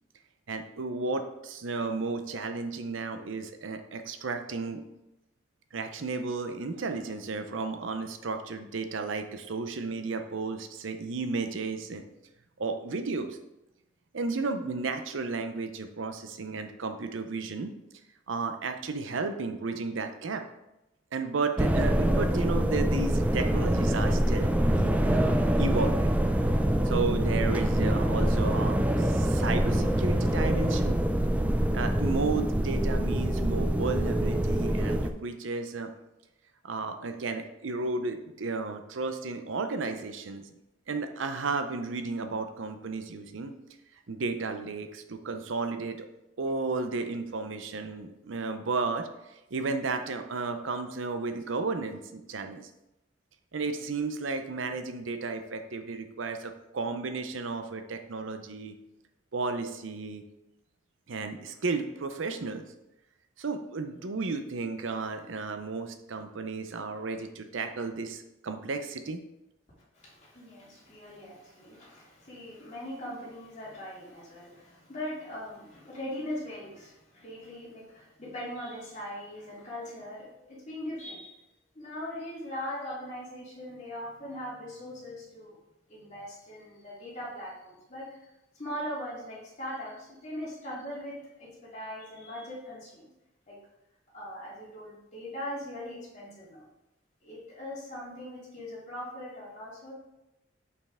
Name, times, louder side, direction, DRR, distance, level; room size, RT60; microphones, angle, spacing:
voice 1, 0.5-4.8 5.7-12.0 12.6-13.4 14.1-17.7 18.3-20.4 21.1-26.1 26.8-31.0 31.7-35.9 36.6-40.4 40.9-43.5 44.1-46.1 46.4-52.7 53.5-58.7 59.3-60.2 61.1-62.6 63.4-69.2, right 3 dB, 75° right, 7 dB, 0.6 m, -33 dB
sound 1, 21.6-35.1, right 1 dB, 5° right, 0.3 m, -25 dB
voice 2, 69.9-81.4 81.7-85.6 85.9-93.1 93.5-93.6 94.1-96.7 97.2-99.9, left 1 dB, 35° left, -7 dB, 2.7 m, -40 dB
6.7 x 5.5 x 3.6 m, 0.92 s
head